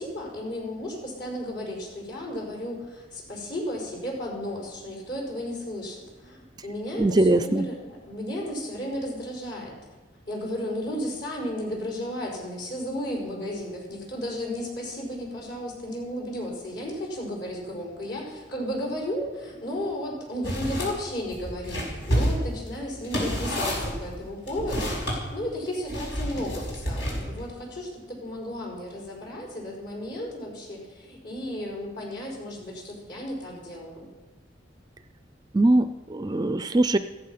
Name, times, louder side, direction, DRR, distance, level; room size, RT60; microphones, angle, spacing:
voice 1, 0.0-9.8 10.3-25.0 25.3-34.1, equal, 60° left, -1 dB, 5.3 m, -34 dB
voice 2, 7.0-7.6 35.5-37.0, right 2 dB, 20° right, 11 dB, 0.4 m, -21 dB
sound 1, 20.4-20.9 21.3-25.2 25.9-27.4, equal, 80° left, 5.8 m, -29 dB
15.0 x 14.0 x 5.7 m, 1.2 s
head